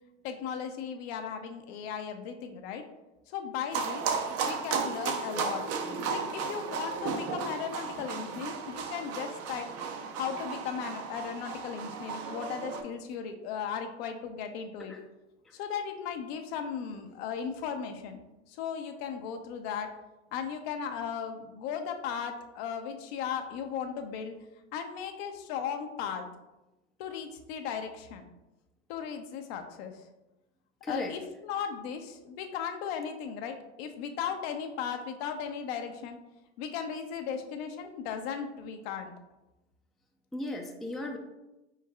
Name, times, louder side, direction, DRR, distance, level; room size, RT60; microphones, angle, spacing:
voice 1, 0.2-2.8 3.3-5.6 6.1-9.7 10.2-14.9 15.5-18.2 18.5-19.9 20.3-24.3 24.7-26.3 27.0-28.2 28.9-30.1 30.9-36.2 36.6-39.1, left 7 dB, 65° left, 6 dB, 0.7 m, -36 dB
sound 1, 3.7-12.8, right 5 dB, 45° right, 0.6 m, -34 dB
voice 2, 30.8-31.1 40.3-41.2, left 1 dB, ahead, 2 dB, 0.4 m, -36 dB
4.6 x 4.6 x 2.3 m, 1.0 s
hypercardioid pair, 80°, 34 cm